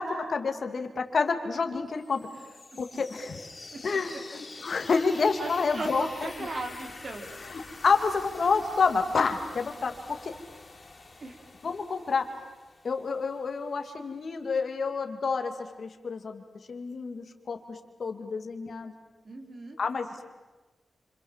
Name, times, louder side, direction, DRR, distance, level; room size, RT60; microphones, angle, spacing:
voice 1, 0.0-2.3 2.8-3.4 3.8-6.3 7.5-10.3 11.6-12.3 12.8-15.5 15.8-16.4 16.7-18.9 19.8-20.2, left 4 dB, 55° left, 6 dB, 2.6 m, -29 dB
sound 1, 2.0-13.7, left 3 dB, 25° left, 4.4 m, -47 dB
voice 2, 5.7-7.3 11.2-11.5 19.2-19.8, right 2 dB, 45° right, 4 dB, 4.0 m, -37 dB
29.5 x 26.5 x 7.5 m, 1.2 s
wide cardioid pair, 130°, 0 cm